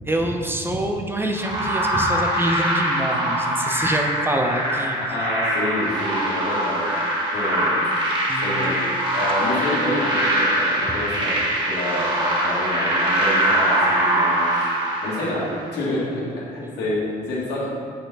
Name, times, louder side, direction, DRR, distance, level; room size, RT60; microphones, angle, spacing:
voice 1, 0.1-5.0 8.3-8.6 10.9-11.0, right 1 dB, 15° right, 3 dB, 0.6 m, -25 dB
sound 1, 1.4-15.7, right 1 dB, 30° right, 1.8 m, -23 dB
voice 2, 5.1-7.8 8.4-8.8 9.1-11.4 11.7-17.7, left 1 dB, 85° left, -6 dB, 1.7 m, -28 dB
7.9 x 4.3 x 4.0 m, 2.1 s
cardioid pair, 110°, 17 cm